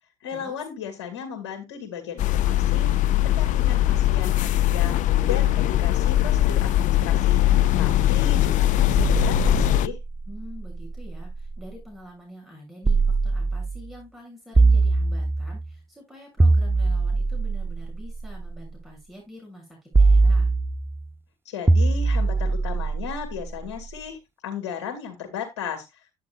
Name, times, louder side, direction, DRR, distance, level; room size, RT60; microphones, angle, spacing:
voice 1, 0.2-3.0 3.2-10.0 21.5-26.1, left 7 dB, 90° left, 4 dB, 2.1 m, -35 dB
sound 1, 2.2-9.9, left 13 dB, 65° left, 0.6 m, -21 dB
sound 2, 9.0-11.7 12.8-13.9 14.5-15.7 16.4-18.6 19.9-21.0 21.7-23.8, right 3 dB, 15° right, 0.6 m, -22 dB
voice 2, 10.3-20.5, equal, ahead, -1 dB, 7.1 m, -46 dB
10.5 x 8.7 x 2.4 m, 0.21 s
hypercardioid pair, 60°, 14 cm